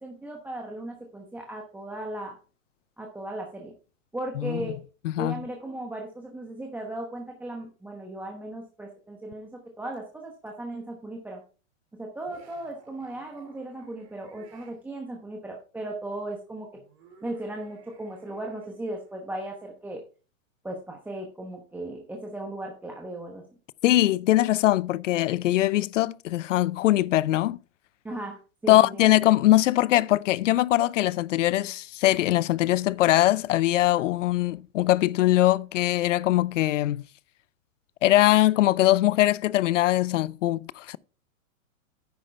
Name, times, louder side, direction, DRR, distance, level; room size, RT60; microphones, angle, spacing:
voice 1, 0.0-2.3 3.0-3.7 4.1-4.8 5.2-11.4 12.0-16.7 17.2-20.0 20.6-23.4 28.0-29.0, right 1 dB, 5° right, 0.9 m, -37 dB
voice 2, 5.0-5.4 23.8-27.6 28.7-37.0 38.0-41.0, left 15 dB, 65° left, 0.6 m, -22 dB
sound 1, 9.9-10.0 10.5-10.6 12.2-14.8 16.7-19.4, right 7 dB, 50° right, 4.8 m, -55 dB
10.5 x 8.3 x 3.3 m
hypercardioid pair, 145°, 41 cm